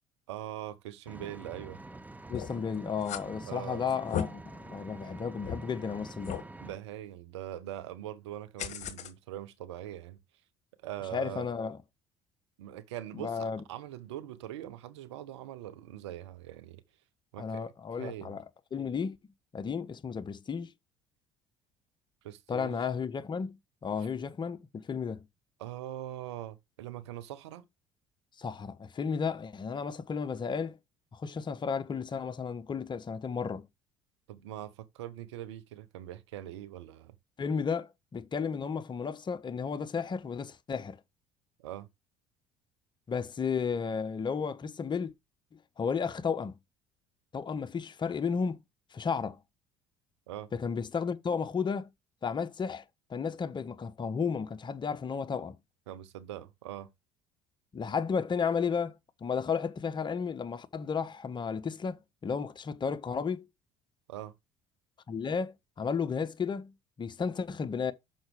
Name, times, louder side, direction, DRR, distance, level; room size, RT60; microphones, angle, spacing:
voice 1, 0.3-1.8 3.5-3.9 6.6-10.2 10.8-11.5 12.6-16.8 17.3-17.6 18.0-18.3 22.2-22.8 25.6-27.6 34.3-37.1 41.6-41.9 50.3-50.5 55.9-56.9 64.1-64.3, right 13 dB, 75° right, 0.9 m, -42 dB
Vehicle, 1.1-6.8, right 2 dB, 10° right, 0.8 m, -47 dB
sound 1, 2.3-2.6 3.0-3.2 3.9-4.2 4.8-4.9 5.4-5.6 6.2-6.4 8.6-9.1, left 9 dB, 50° left, 1.3 m, -35 dB
voice 2, 2.3-6.4 11.1-11.8 13.1-13.6 17.4-18.4 18.7-19.2 19.5-20.7 22.5-23.6 23.8-25.2 28.4-30.8 31.1-33.7 37.4-41.0 43.1-45.1 45.8-46.5 47.3-48.6 48.9-49.4 50.5-51.9 52.2-52.8 53.1-55.6 57.7-59.0 59.2-63.5 65.1-66.7 67.0-67.9, left 6 dB, 30° left, 1.1 m, -33 dB
6.3 x 5.8 x 5.0 m
figure-of-eight pair, 60°, 15 cm